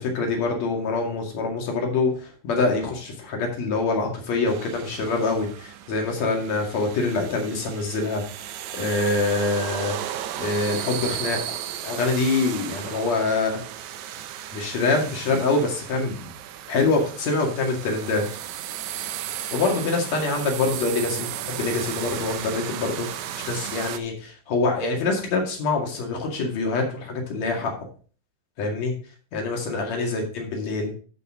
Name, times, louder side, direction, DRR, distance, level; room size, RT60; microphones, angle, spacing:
voice 1, 0.0-10.0 10.4-11.4 11.8-13.6 14.5-16.3 16.7-18.3 19.5-23.1 23.3-27.8 28.6-28.9 29.3-30.9, left 3 dB, 55° left, 1 dB, 3.2 m, -25 dB
sound 1, 4.5-24.0, right 11 dB, 80° right, 1.8 m, -35 dB
12.5 x 5.5 x 3.7 m, 0.40 s
omnidirectional pair, 3.9 m